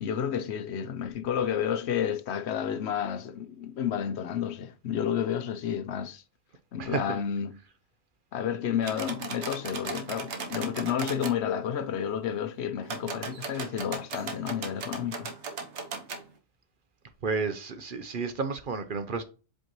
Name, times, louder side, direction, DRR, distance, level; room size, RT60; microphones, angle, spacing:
voice 1, 0.0-6.2 6.7-7.6 8.3-15.3, left 8 dB, 70° left, 0.9 m, -31 dB
sound 1, 8.8-11.4 12.8-16.2, right 4 dB, 70° right, 1.2 m, -37 dB
voice 2, 17.2-19.2, right 4 dB, 50° right, 0.8 m, -31 dB
7.8 x 4.4 x 3.0 m
omnidirectional pair, 1.2 m